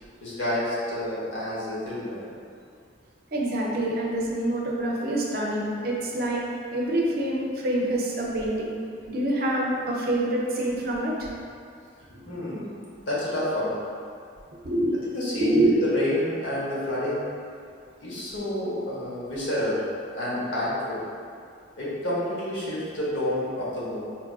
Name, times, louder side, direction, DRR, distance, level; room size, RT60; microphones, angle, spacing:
voice 1, 0.2-2.2 12.1-12.7 13.1-13.7 15.1-17.3 18.0-19.8 20.1-21.0 21.8-24.0, left 1 dB, 85° left, -8 dB, 0.9 m, -29 dB
voice 2, 3.3-6.4 6.7-8.8 9.1-11.3 14.6-15.0 15.4-15.8, right 1 dB, 50° right, -3 dB, 0.5 m, -26 dB
4.1 x 2.3 x 2.3 m, 2.3 s
head